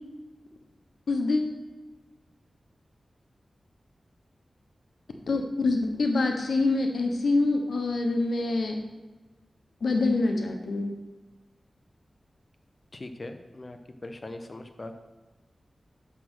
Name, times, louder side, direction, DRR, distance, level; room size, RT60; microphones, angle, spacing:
voice 1, 1.1-1.5 5.3-8.8 9.8-10.9, left 3 dB, 85° left, 4 dB, 1.0 m, -25 dB
voice 2, 12.9-14.9, left 2 dB, 35° left, 6 dB, 0.6 m, -41 dB
6.2 x 6.0 x 6.2 m, 1.2 s
wide cardioid pair, 85°, 0 cm